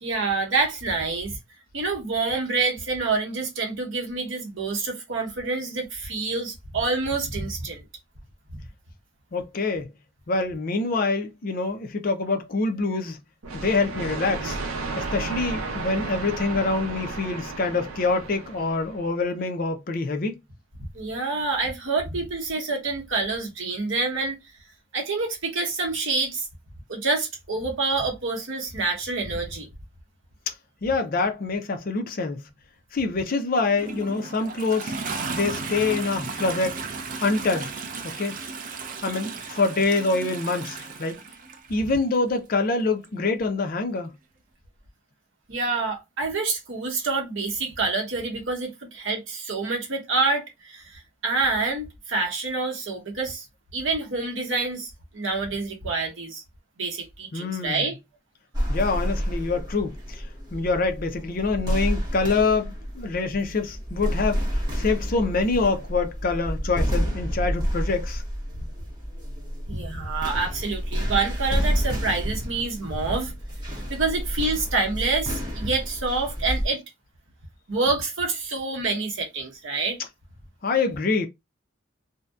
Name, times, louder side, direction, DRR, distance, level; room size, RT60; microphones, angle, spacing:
voice 1, 0.0-1.4 1.7-7.8 20.9-24.4 24.9-26.5 26.9-29.7 45.5-53.4 53.7-56.4 56.8-58.0 69.7-73.3 73.7-76.8 77.7-80.0, right 3 dB, 70° right, 0.9 m, -27 dB
voice 2, 9.3-9.9 10.3-13.2 13.5-14.6 15.0-20.4 30.5-30.6 30.8-32.4 32.9-35.0 35.3-36.8 37.2-37.7 38.0-38.3 39.0-41.2 41.7-44.1 57.3-57.8 58.7-68.2 80.6-81.3, left 3 dB, 40° left, 0.4 m, -25 dB
sound 1, 13.4-19.1, right 3 dB, 85° right, 0.6 m, -33 dB
Toilet flush, 33.6-42.0 43.0-43.1, right 4 dB, 40° right, 0.4 m, -35 dB
sound 2, 58.5-76.7, equal, 20° right, 0.8 m, -29 dB
2.6 x 2.1 x 2.3 m
head